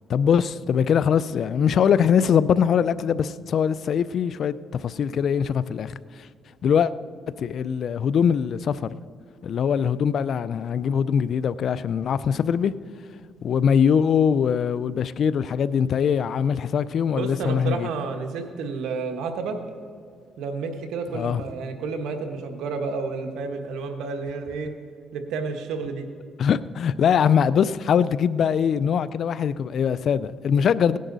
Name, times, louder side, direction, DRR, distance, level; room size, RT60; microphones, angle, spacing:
voice 1, 0.1-5.9 6.6-6.9 7.4-9.0 9.4-12.7 13.4-17.9 21.1-21.4 26.4-31.0, left 7 dB, 65° left, 0.4 m, -22 dB
voice 2, 17.2-19.6 20.4-24.7 25.1-26.0, right 4 dB, 85° right, 1.3 m, -30 dB
18.0 x 10.0 x 4.0 m
cardioid pair, 80°, 0 cm